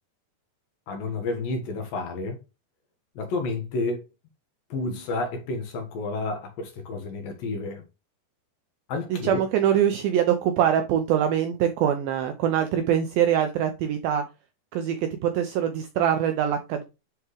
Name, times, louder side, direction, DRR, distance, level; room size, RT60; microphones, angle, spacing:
voice 1, 0.9-2.4 3.2-4.0 4.7-7.8 8.9-9.4, left 3 dB, 65° left, 2.6 m, -30 dB
voice 2, 9.1-14.2 14.7-15.0 15.2-16.8, right 9 dB, 90° right, 2.1 m, -23 dB
9.8 x 3.6 x 3.2 m
omnidirectional pair, 5.0 m